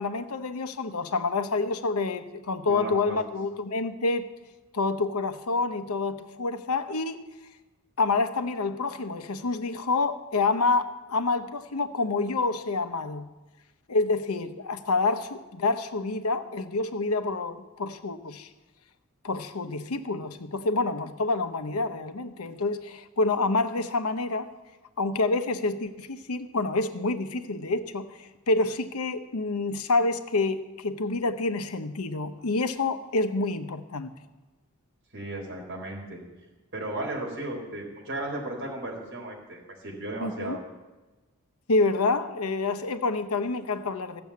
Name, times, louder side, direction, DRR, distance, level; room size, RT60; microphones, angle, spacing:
voice 1, 0.0-4.2 4.7-7.2 8.0-13.3 13.9-18.5 19.2-24.5 25.0-34.1 40.2-40.6 41.7-44.2, left 3 dB, 85° left, 10 dB, 0.8 m, -28 dB
voice 2, 2.7-3.2 35.1-36.2 36.7-40.6, right 1 dB, 55° right, -1 dB, 4.2 m, -35 dB
14.5 x 7.0 x 8.4 m, 1.2 s
head